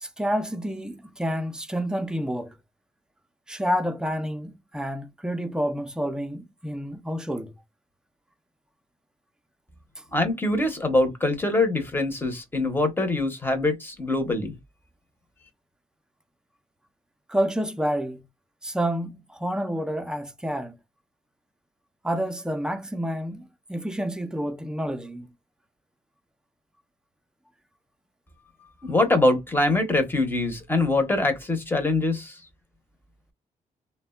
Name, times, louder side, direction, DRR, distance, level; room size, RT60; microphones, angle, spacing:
voice 1, 0.0-2.6 3.5-7.5 10.0-10.1 17.3-18.2 18.6-20.7 22.0-25.3, equal, 5° right, 0.4 m, -29 dB
voice 2, 10.1-14.6 28.8-32.4, left 2 dB, 15° left, 0.8 m, -23 dB
3.3 x 2.1 x 2.3 m
cardioid pair, 115°, 15 cm